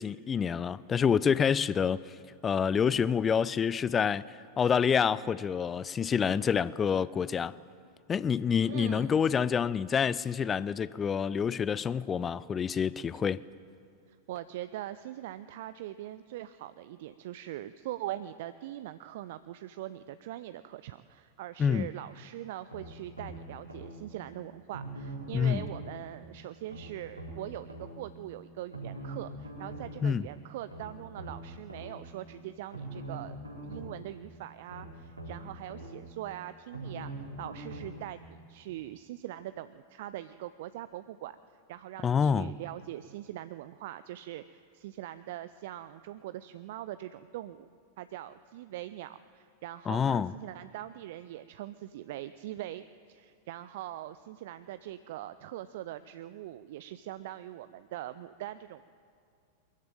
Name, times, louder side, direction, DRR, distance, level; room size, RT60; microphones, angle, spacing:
voice 1, 0.0-2.1 2.4-4.2 4.6-7.5 8.1-13.4 21.6-21.9 25.3-25.6 30.0-30.2 42.0-42.5 49.9-50.3, left 7 dB, 20° left, 0.4 m, -27 dB
voice 2, 8.7-9.2 14.3-33.4 33.6-37.1 37.4-41.4 41.7-47.7 48.0-58.9, right 13 dB, 55° right, 0.5 m, -42 dB
sound 1, 22.7-24.0 24.7-26.0 26.7-28.0 28.7-30.0 30.7-32.0 32.7-34.0 34.7-36.0 36.7-38.0 38.7-38.8, right 1 dB, 85° right, 4.3 m, -42 dB
22.0 x 14.0 x 9.1 m
figure-of-eight pair, 90°, 0 cm